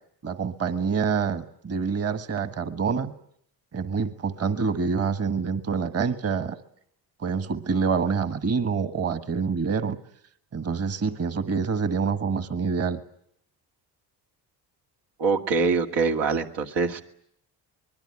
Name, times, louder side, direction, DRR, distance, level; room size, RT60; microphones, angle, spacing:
voice 1, 0.2-3.1 3.7-6.6 7.2-10.0 10.5-13.0, right 5 dB, 35° right, 11 dB, 1.5 m, -26 dB
voice 2, 15.2-17.0, right 4 dB, 85° right, 4 dB, 2.3 m, -24 dB
25.0 x 21.0 x 9.8 m, 0.69 s
cardioid pair, 120°, 41 cm